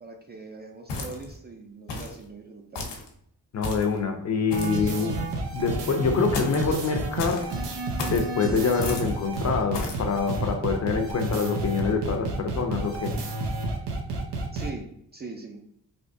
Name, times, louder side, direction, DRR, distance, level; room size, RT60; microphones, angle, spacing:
voice 1, 0.0-2.9 14.5-14.9 15.1-15.6, right 3 dB, 25° right, 0.4 m, -41 dB
sound 1, 0.9-1.4 1.9-2.2 2.8-3.1 3.6-4.0 4.5-4.9 6.3-6.7 7.2-7.5 8.0-8.3 8.8-9.1 9.7-10.0, left 2 dB, 80° left, 0.8 m, -33 dB
voice 2, 3.5-5.2 5.5-7.5 8.1-13.2, left 5 dB, 40° left, 0.5 m, -26 dB
sound 2, 4.5-14.7, right 2 dB, 85° right, 0.8 m, -30 dB
3.4 x 2.8 x 2.6 m
wide cardioid pair, 130°, 41 cm